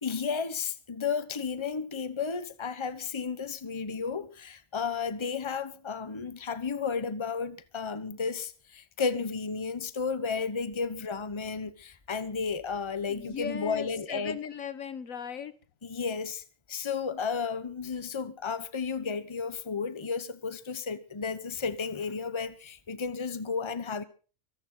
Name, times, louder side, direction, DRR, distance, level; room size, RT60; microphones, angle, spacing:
voice 1, 0.0-14.4 15.8-16.4 16.7-24.0, left 5 dB, 25° left, 1.1 m, -33 dB
voice 2, 13.1-15.5, left 7 dB, 80° left, 1.7 m, -38 dB
24.0 x 11.5 x 3.9 m
omnidirectional pair, 1.4 m